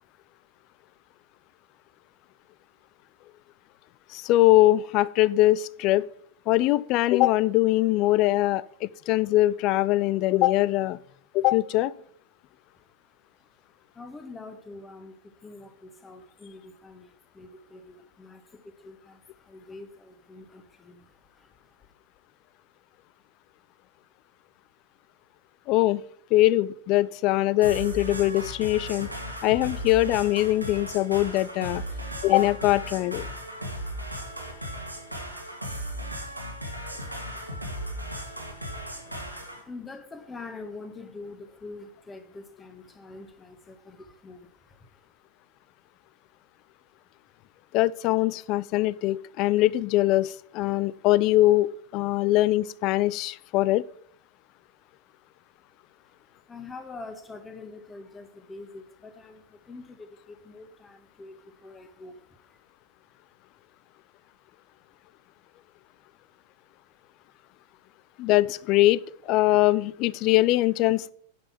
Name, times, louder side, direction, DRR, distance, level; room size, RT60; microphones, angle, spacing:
voice 1, 4.1-6.1 6.5-11.0 11.3-11.9 25.7-26.0 26.3-29.1 29.4-31.8 32.2-33.3 47.7-53.8 68.2-71.1, left 16 dB, 40° left, 21 dB, 0.4 m, -22 dB
voice 2, 12.6-21.9 38.9-45.1 56.0-62.6, left 3 dB, 15° left, 8 dB, 1.5 m, -45 dB
sound 1, 27.6-39.6, equal, 90° right, 1.9 m, -36 dB
10.5 x 5.5 x 5.8 m, 0.62 s
figure-of-eight pair, 90°, 0 cm